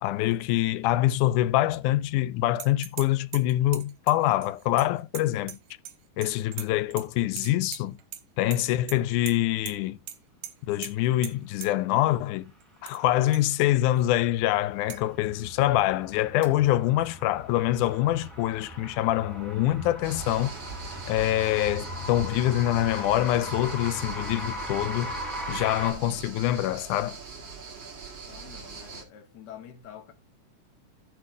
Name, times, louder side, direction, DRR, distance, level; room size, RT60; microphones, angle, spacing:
voice 1, 0.0-5.6 6.2-8.0 8.4-10.0 10.6-12.5 12.8-20.5 21.1-25.2 25.5-27.2, left 14 dB, 75° left, 2.0 m, -25 dB
sound 1, 2.6-3.1 3.3-6.0 6.2-7.1 7.4-8.2 8.5-9.0 9.3-9.4 9.7-9.8 10.1-10.2 10.4-10.5 10.8-10.9 11.2-11.3 11.6-11.7 12.6-13.0 13.3-13.4 14.0-14.1 14.9-15.0 16.4-16.5, right 11 dB, 75° right, 2.6 m, -39 dB
sound 2, 13.5-25.9, equal, ahead, 3.9 m, -39 dB
sound 3, 20.0-29.0, right 4 dB, 40° right, 2.5 m, -41 dB
voice 2, 28.2-30.1, left 9 dB, 50° left, 1.3 m, -47 dB
15.5 x 7.3 x 2.2 m
omnidirectional pair, 3.9 m